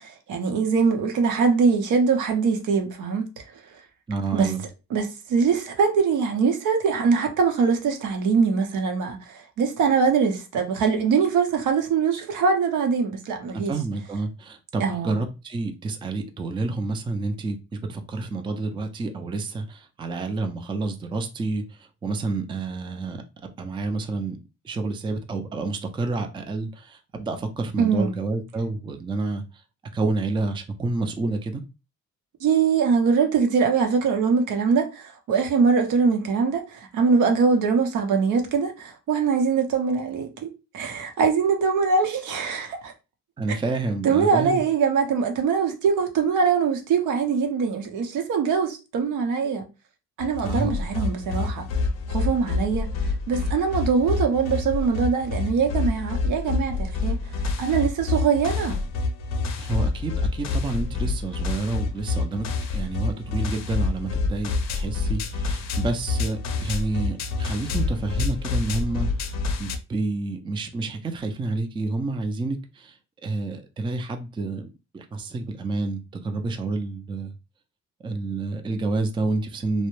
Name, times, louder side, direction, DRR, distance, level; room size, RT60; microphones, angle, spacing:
voice 1, 0.0-3.4 4.3-4.5 4.9-13.7 14.8-15.2 27.8-28.1 32.4-42.9 44.0-49.7 50.2-51.7 52.1-52.9 53.3-57.2 57.6-58.8, right 5 dB, 80° right, 0.7 m, -22 dB
voice 2, 4.1-4.6 13.5-23.2 23.6-24.4 24.6-29.4 29.9-31.6 43.4-44.6 50.4-50.7 59.6-62.5 62.7-73.0 73.2-77.3 78.0-79.9, right 3 dB, 15° right, 0.4 m, -29 dB
sound 1, 50.2-69.8, left 3 dB, 60° left, 0.5 m, -27 dB
2.1 x 2.0 x 3.0 m
cardioid pair, 90°, 30 cm